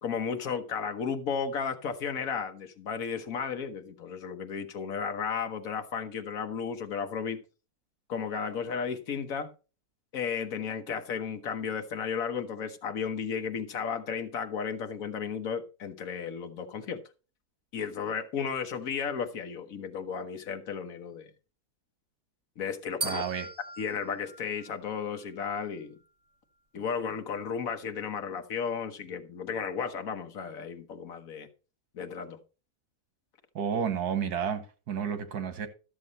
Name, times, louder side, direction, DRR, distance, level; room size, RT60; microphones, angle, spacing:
voice 1, 0.0-7.4 8.1-9.5 10.1-17.0 17.7-21.3 22.6-23.2 23.8-26.0 26.7-31.5 31.9-32.4, left 6 dB, 65° left, 1.5 m, -34 dB
sound 1, 23.0-25.3, right 3 dB, 35° right, 2.0 m, -39 dB
voice 2, 23.0-23.5 33.5-35.7, right 7 dB, 85° right, 1.7 m, -31 dB
12.5 x 7.1 x 4.1 m
omnidirectional pair, 1.6 m